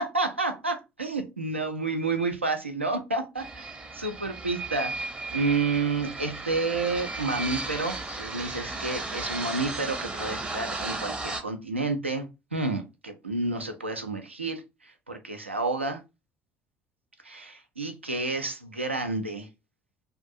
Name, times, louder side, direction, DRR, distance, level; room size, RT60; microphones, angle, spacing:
voice 1, 0.0-3.7 3.9-4.9 5.3-16.0 17.2-19.5, right 3 dB, 90° right, 7 dB, 0.4 m, -30 dB
sound 1, 3.4-11.4, right 3 dB, 15° right, 0.6 m, -35 dB
2.5 x 2.3 x 2.6 m, 0.26 s
figure-of-eight pair, 55°, 6 cm